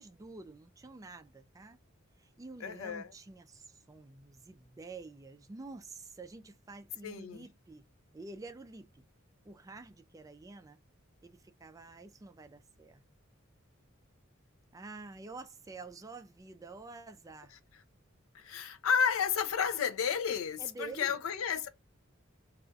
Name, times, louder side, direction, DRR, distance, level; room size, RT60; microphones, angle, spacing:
voice 1, 0.0-1.8 2.2-7.8 8.1-9.0 9.4-10.8 11.2-13.0 14.7-17.5 20.6-21.2, right 3 dB, 15° right, 0.3 m, -48 dB
voice 2, 2.6-3.1 7.0-7.5 18.3-21.7, left 7 dB, 90° left, 0.5 m, -32 dB
2.4 x 2.2 x 3.8 m
head